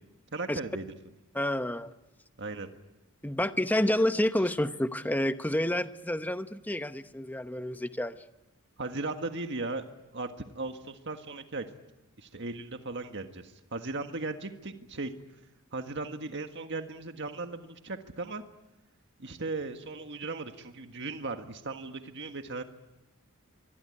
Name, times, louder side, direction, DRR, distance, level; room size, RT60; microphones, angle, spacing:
voice 1, 0.3-0.9 2.4-2.7 4.4-4.5 8.8-9.9 10.1-11.7 12.2-15.1 15.7-18.4 19.2-22.6, right 3 dB, 55° right, 6 dB, 1.7 m, -37 dB
voice 2, 1.3-1.9 3.2-8.2, left 1 dB, 10° left, 10 dB, 0.9 m, -29 dB
24.5 x 23.0 x 10.0 m, 1.0 s
head